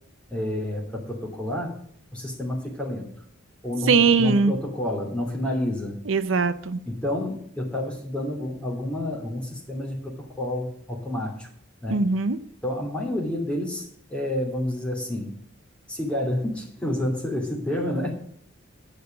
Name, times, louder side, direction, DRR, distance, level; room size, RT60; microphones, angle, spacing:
voice 1, 0.3-1.7 2.1-3.1 3.6-6.1 6.8-11.5 11.8-12.0 12.6-15.3 15.9-18.1, left 1 dB, 5° left, -2 dB, 2.9 m, -29 dB
voice 2, 3.9-4.5 6.1-6.8 11.9-12.4, right 4 dB, 75° right, 12 dB, 0.6 m, -20 dB
10.0 x 6.7 x 7.8 m, 0.67 s
head